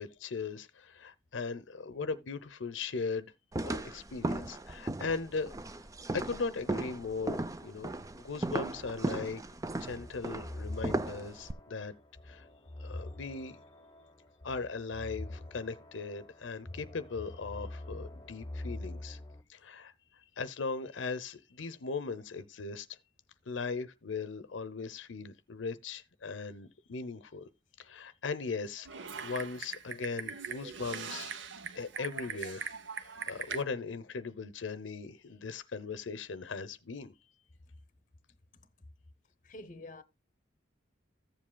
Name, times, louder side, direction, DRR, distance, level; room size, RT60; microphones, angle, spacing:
voice 1, 0.0-3.3 3.6-5.5 6.1-9.4 9.8-11.9 12.2-12.5 12.8-13.6 14.4-19.2 19.5-19.9 20.4-22.9 23.5-27.5 27.8-31.3 31.7-32.7 32.9-37.1, left 4 dB, 80° left, 0.7 m, -38 dB
sound 1, 3.5-11.5, right 2 dB, 15° right, 0.4 m, -36 dB
sound 2, 9.9-19.4, left 1 dB, 20° left, 1.0 m, -45 dB
Typing, 28.9-33.6, right 6 dB, 70° right, 0.8 m, -41 dB
voice 2, 38.5-38.9 39.4-40.0, left 2 dB, 40° left, 0.7 m, -48 dB
14.5 x 7.6 x 2.2 m
head